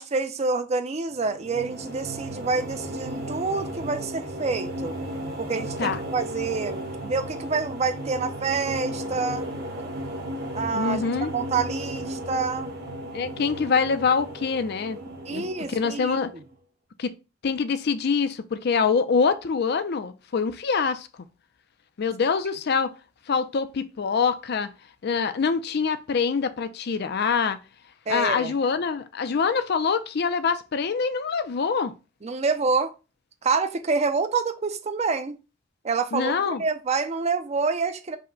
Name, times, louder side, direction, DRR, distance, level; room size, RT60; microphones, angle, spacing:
voice 1, 0.0-4.9 5.4-9.5 10.5-11.0 11.3-12.7 15.2-16.2 28.1-28.5 32.2-32.9 33.4-35.4 35.8-38.2, right 4 dB, 35° right, 0.5 m, -27 dB
sound 1, 1.1-16.5, right 1 dB, 55° right, 1.0 m, -35 dB
voice 2, 10.7-11.3 13.1-15.0 15.3-16.3 17.0-17.1 17.4-21.1 22.0-22.9 23.3-24.7 25.0-27.6 28.1-31.9 36.1-36.6, left 5 dB, 55° left, 0.4 m, -25 dB
5.4 x 2.1 x 3.8 m
head